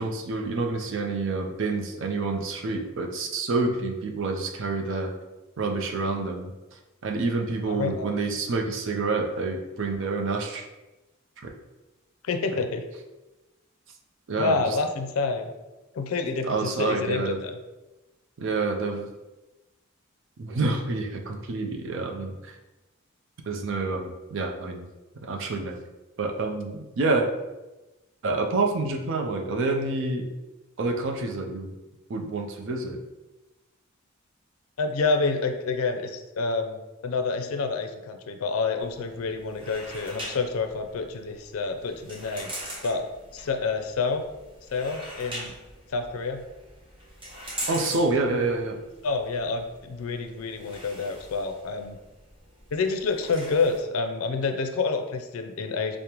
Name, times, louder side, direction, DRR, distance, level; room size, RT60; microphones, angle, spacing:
voice 1, 0.0-5.1 5.6-10.7 14.3-14.8 16.4-17.4 18.4-19.1 20.4-22.5 23.4-24.9 25.2-25.8 26.2-27.3 28.2-30.3 30.8-31.7 32.1-33.0 47.7-48.8, right 3 dB, 60° right, 3 dB, 0.5 m, -28 dB
voice 2, 7.7-8.1 12.2-12.9 14.4-15.5 15.9-17.6 34.8-42.5 42.8-43.0 43.3-44.2 44.7-45.5 45.9-46.4 49.0-52.0 52.7-56.0, left 4 dB, 80° left, 6 dB, 0.4 m, -28 dB
sound 1, 38.8-53.8, equal, 25° right, 0.9 m, -42 dB
4.9 x 2.1 x 2.9 m, 1.1 s
head